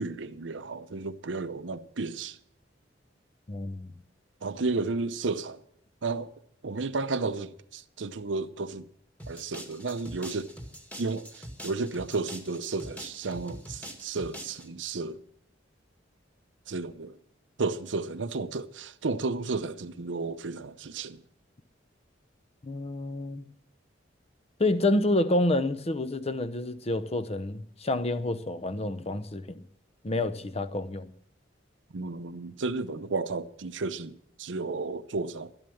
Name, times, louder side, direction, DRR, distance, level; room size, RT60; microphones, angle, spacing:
voice 1, 0.0-2.4 4.4-5.6 6.0-6.3 6.6-8.9 9.3-10.5 11.0-15.2 16.7-17.2 17.6-21.2 31.9-35.5, right 3 dB, 80° right, 0.7 m, -33 dB
voice 2, 3.5-3.9 22.6-23.4 24.6-29.6 30.0-31.1, left 2 dB, 35° left, 0.8 m, -28 dB
sound 1, 9.2-14.7, equal, 10° left, 1.9 m, -44 dB
12.5 x 11.0 x 7.1 m
head